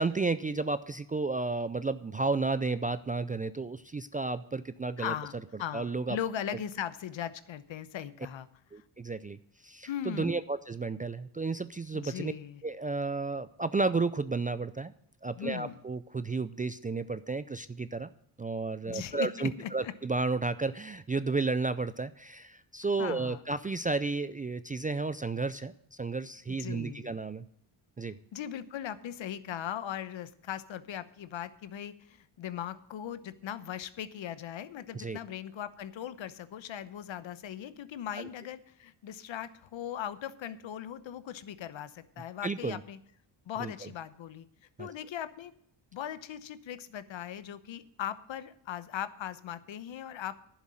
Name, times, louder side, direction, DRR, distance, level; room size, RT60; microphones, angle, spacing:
voice 1, 0.0-5.1 5.7-6.2 8.7-9.4 9.6-12.3 12.6-14.9 15.2-18.1 18.4-27.4 28.0-28.1 34.9-35.2 38.2-38.3 42.4-42.8 43.6-43.7 44.8-44.9, right 3 dB, 20° right, 13 dB, 0.3 m, -32 dB
voice 2, 5.0-8.5 9.8-10.4 11.9-12.6 15.4-15.8 18.9-19.9 23.0-23.4 26.5-27.2 28.3-43.0 43.5-44.5 44.8-45.5 45.9-50.4, left 10 dB, 65° left, 14 dB, 1.0 m, -39 dB
11.0 x 7.3 x 7.6 m, 0.70 s
cardioid pair, 80°, 49 cm